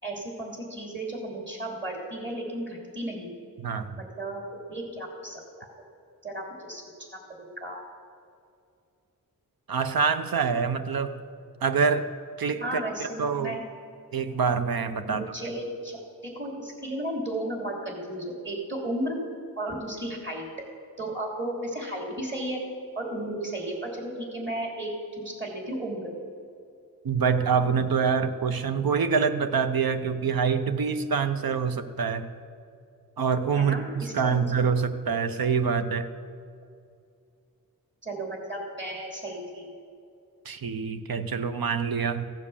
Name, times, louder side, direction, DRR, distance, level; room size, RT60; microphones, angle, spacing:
voice 1, 0.0-3.3 3.9-5.4 6.2-6.8 7.4-7.8 12.6-13.6 15.0-19.2 19.6-20.4 21.0-22.6 22.9-24.9 25.2-26.1 33.6-34.4 38.0-39.7, right 1 dB, 30° right, -1 dB, 3.1 m, -34 dB
voice 2, 3.6-4.0 9.7-11.2 11.6-12.1 12.4-13.6 14.1-15.2 27.0-32.3 33.2-36.1 40.5-42.3, right 6 dB, 85° right, 10 dB, 0.7 m, -26 dB
15.5 x 7.4 x 7.0 m, 2.4 s
wide cardioid pair, 95°, 35 cm